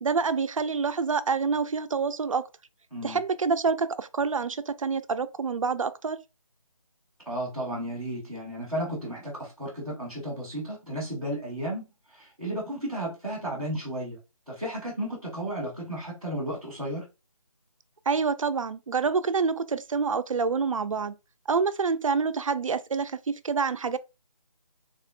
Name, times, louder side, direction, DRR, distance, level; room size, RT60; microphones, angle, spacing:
voice 1, 0.0-2.5 3.0-6.2 18.1-21.2 21.5-24.0, right 5 dB, 65° right, 0.4 m, -27 dB
voice 2, 7.3-14.2 14.5-17.1, right 1 dB, ahead, 0.5 m, -33 dB
3.5 x 2.1 x 2.5 m
figure-of-eight pair, 160°, 18 cm